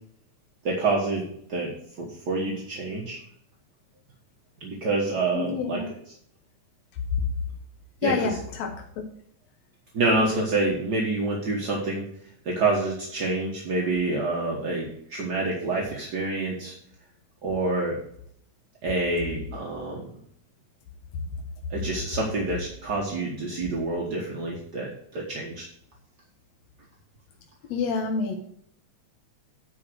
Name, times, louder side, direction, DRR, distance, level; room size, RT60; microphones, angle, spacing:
voice 1, 0.6-3.2 4.6-5.8 8.0-8.3 9.9-12.1 12.4-16.7 17.4-18.0 18.8-20.1 21.7-25.6, right 2 dB, 45° right, -2 dB, 1.4 m, -27 dB
voice 2, 5.3-5.9 8.0-8.7 27.7-28.4, left 5 dB, 70° left, 2 dB, 2.1 m, -27 dB
10.0 x 4.8 x 6.2 m, 0.68 s
omnidirectional pair, 3.5 m